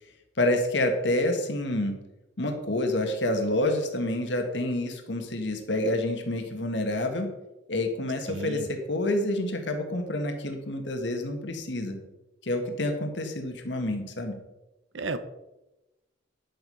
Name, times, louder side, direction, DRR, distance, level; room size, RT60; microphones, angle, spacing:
voice 1, 0.4-1.9 2.4-7.3 7.7-12.0 12.4-14.4, left 1 dB, 65° left, 5 dB, 1.6 m, -28 dB
voice 2, 8.3-8.7 14.9-15.2, right 3 dB, 85° right, 11 dB, 0.9 m, -32 dB
10.5 x 8.1 x 5.4 m, 0.99 s
head